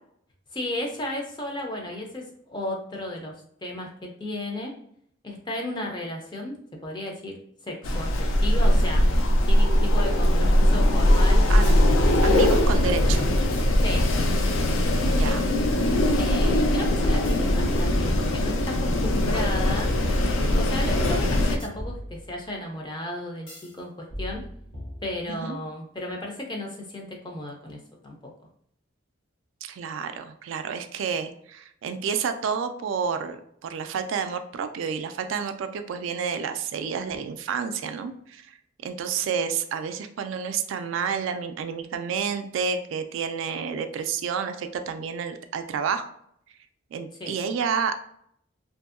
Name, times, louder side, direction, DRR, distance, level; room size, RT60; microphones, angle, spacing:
voice 1, 0.5-3.3 3.6-4.7 5.2-6.6 6.8-7.4 7.6-9.1 9.5-11.5 13.8-14.1 15.3-15.4 16.2-19.9 20.5-24.4 25.0-28.3 47.2-47.4, left 1 dB, 20° left, 0 dB, 0.4 m, -34 dB
Wind, 7.8-21.6, left 1 dB, 80° left, 0.4 m, -21 dB
voice 2, 11.5-11.8 12.2-13.3 15.0-15.5 25.3-25.6 29.6-38.6 38.8-46.1 46.9-48.0, right 6 dB, 75° right, 8 dB, 0.3 m, -30 dB
sound 1, 11.6-12.3 13.3-14.6 17.2-18.9 21.6-22.6 23.5-23.8 24.1-25.5, equal, 65° left, 1.1 m, -38 dB
2.7 x 2.6 x 2.4 m, 0.68 s
head